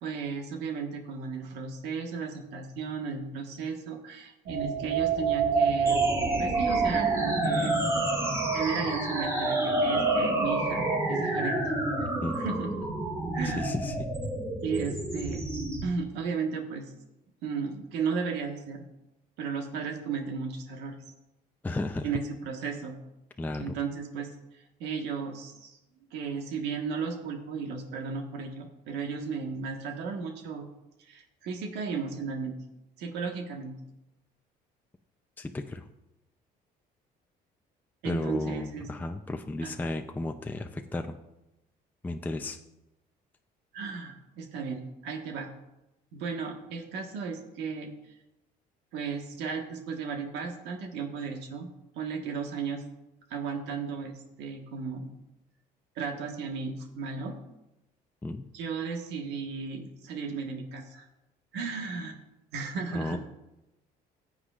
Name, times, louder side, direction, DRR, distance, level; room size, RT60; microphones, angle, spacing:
voice 1, 0.0-6.0 6.4-7.8 8.5-11.6 12.0-12.9 13.3-13.7 14.6-15.4 15.8-16.9 17.4-18.9 19.4-21.0 22.0-23.0 23.6-25.8 26.1-30.7 31.0-32.6 33.0-33.8 38.0-38.9 39.6-39.7 43.7-45.5 46.1-47.9 48.9-51.7 51.9-52.8 53.3-55.1 55.9-57.4 58.5-61.1 61.5-62.2 62.5-63.2, right 5 dB, 90° right, 3 dB, 1.5 m, -35 dB
sound 1, 4.5-11.0, right 4 dB, 55° right, 1.7 m, -28 dB
sound 2, 5.8-15.8, right 1 dB, 20° right, 4.0 m, -31 dB
voice 2, 13.4-14.1 21.6-22.1 23.4-23.7 35.4-35.8 38.0-41.2 42.0-42.6 58.2-58.5 62.9-63.2, left 2 dB, 10° left, 5 dB, 0.5 m, -33 dB
15.0 x 8.1 x 2.5 m, 0.93 s
cardioid pair, 110°, 17 cm